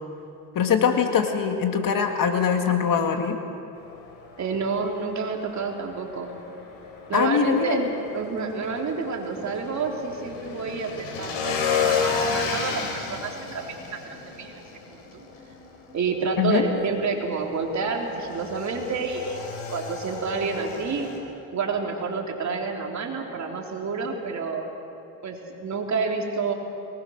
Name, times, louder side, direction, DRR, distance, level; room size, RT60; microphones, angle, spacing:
voice 1, 0.6-3.4 7.1-7.8 16.4-16.6, left 7 dB, 45° left, 5 dB, 2.2 m, -22 dB
Motorcycle / Engine, 3.8-21.2, left 5 dB, 70° left, 4.5 m, -33 dB
voice 2, 4.4-6.3 7.1-7.8 8.1-15.2 15.9-19.4 19.7-21.1 21.5-24.7 25.2-26.5, right 4 dB, 40° right, 1 dB, 3.7 m, -29 dB
23.0 x 20.0 x 6.6 m, 2.7 s
supercardioid pair, 90°, 45 cm